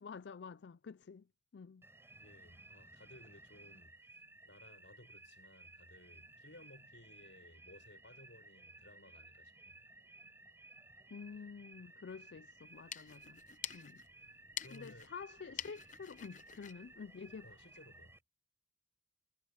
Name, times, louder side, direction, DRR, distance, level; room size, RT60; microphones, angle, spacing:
voice 1, 0.0-1.3 1.5-1.9 11.1-13.4 13.7-14.0 14.7-17.5, left 5 dB, 70° left, 0.4 m, -49 dB
sound 1, 1.8-18.2, right 2 dB, 15° right, 4.9 m, -58 dB
voice 2, 2.1-4.1 4.4-9.8 14.6-15.1 15.5-15.6 17.4-18.2, left 1 dB, 90° left, 6.4 m, -59 dB
sound 2, 12.6-17.9, left 10 dB, 45° left, 0.8 m, -49 dB
head